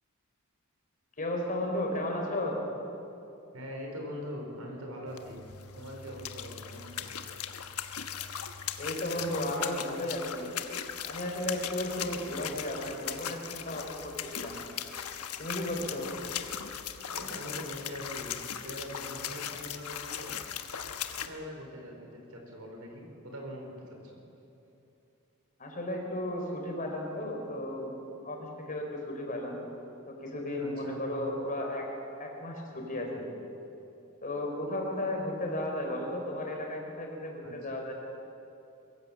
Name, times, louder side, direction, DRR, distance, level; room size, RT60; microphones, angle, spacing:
voice 1, 1.2-2.6 8.8-10.5 11.1-14.6 15.4-16.1 25.6-29.6 30.1-31.9 32.2-33.3 34.2-37.9, left 1 dB, 40° left, 1 dB, 3.9 m, -34 dB
voice 2, 3.5-5.4 5.8-7.1 15.9-16.0 17.1-20.3 21.2-24.2 30.6-31.0 37.4-37.5, equal, 75° right, 1 dB, 4.6 m, -42 dB
sound 1, 5.1-21.3, left 9 dB, 85° left, 1.2 m, -39 dB
22.5 x 15.5 x 7.5 m, 2.8 s
head